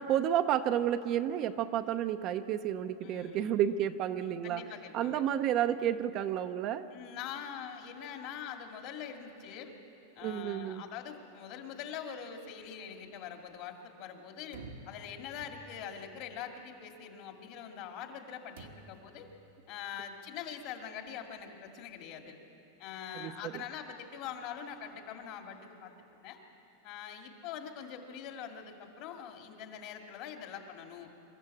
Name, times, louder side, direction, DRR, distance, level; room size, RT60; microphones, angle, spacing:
voice 1, 0.0-4.6 4.9-6.9 10.2-10.8 23.1-23.5, right 10 dB, 35° right, 9 dB, 0.6 m, -31 dB
voice 2, 3.0-3.5 4.4-5.2 6.9-9.7 10.2-14.6 14.9-19.3 19.7-22.3 22.8-25.9 26.2-26.4 26.8-31.1, left 8 dB, 50° left, 4 dB, 2.2 m, -43 dB
sound 1, 14.5-16.0 18.6-19.1, right 3 dB, 85° right, 1.6 m, -50 dB
24.5 x 13.5 x 8.5 m, 2.8 s
supercardioid pair, 145°, 0 cm